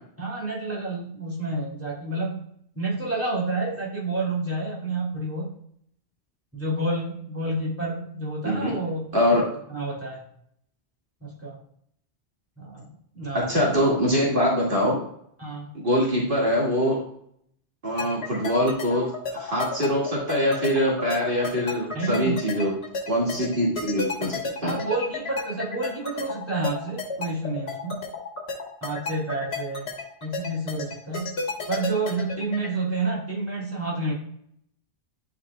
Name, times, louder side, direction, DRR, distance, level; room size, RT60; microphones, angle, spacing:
voice 1, 0.2-2.4 2.7-5.5 6.5-9.1 9.7-10.2 11.2-11.6 12.6-13.5 15.4-15.7 21.9-22.3 24.6-28.0 28.8-29.9 30.2-31.3 31.7-34.1, right 2 dB, 15° right, -5 dB, 2.5 m, -29 dB
voice 2, 9.1-9.4 13.3-15.0 15.7-17.0 17.8-22.7 23.1-24.7, equal, 55° right, -4 dB, 2.2 m, -23 dB
sound 1, 18.0-32.7, left 4 dB, 75° left, 1.7 m, -32 dB
11.0 x 4.9 x 2.3 m, 0.67 s
omnidirectional pair, 1.1 m